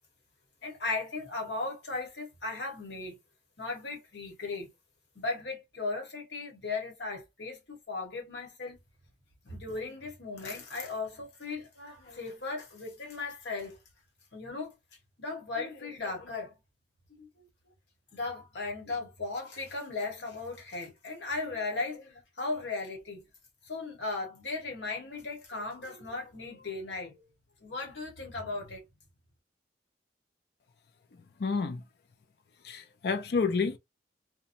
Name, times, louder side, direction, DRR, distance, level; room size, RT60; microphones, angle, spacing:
voice 1, 0.6-3.2 3.6-4.7 5.1-8.8 9.4-13.8 14.3-14.7 15.2-16.5 17.1-17.5 18.1-23.2 23.6-27.2 27.6-28.8, left 3 dB, 75° left, 1.2 m, -37 dB
voice 2, 31.4-31.8 32.6-33.8, left 4 dB, 60° left, 0.4 m, -29 dB
2.9 x 2.2 x 2.5 m
head